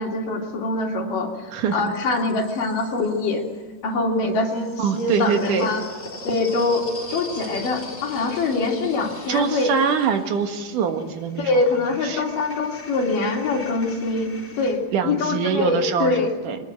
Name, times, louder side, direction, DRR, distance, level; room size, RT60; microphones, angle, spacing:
voice 1, 0.0-3.4 3.8-5.8 6.2-6.8 7.1-9.7 11.4-16.3, left 3 dB, 70° left, 0 dB, 4.6 m, -24 dB
sound 1, 1.1-3.5 4.4-14.8, left 1 dB, 20° left, 3.8 m, -40 dB
voice 2, 1.5-1.8 4.8-5.7 9.3-11.5 12.0-12.2 14.9-16.1 16.4-16.6, right 6 dB, 70° right, 6 dB, 3.0 m, -23 dB
22.5 x 20.0 x 7.6 m, 1.4 s
omnidirectional pair, 3.9 m